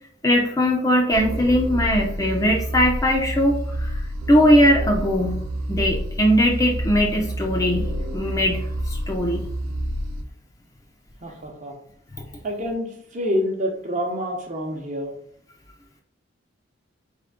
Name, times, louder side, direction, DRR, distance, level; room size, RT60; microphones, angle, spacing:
voice 1, 0.2-4.0 4.3-5.4 5.7-7.8 8.1-9.4, equal, 15° left, 1 dB, 0.4 m, -20 dB
sound 1, 1.1-10.2, right 1 dB, 80° right, 0.6 m, -28 dB
voice 2, 11.2-11.7 12.4-15.1, equal, 40° right, 2 dB, 0.8 m, -27 dB
3.6 x 3.3 x 3.5 m, 0.66 s
head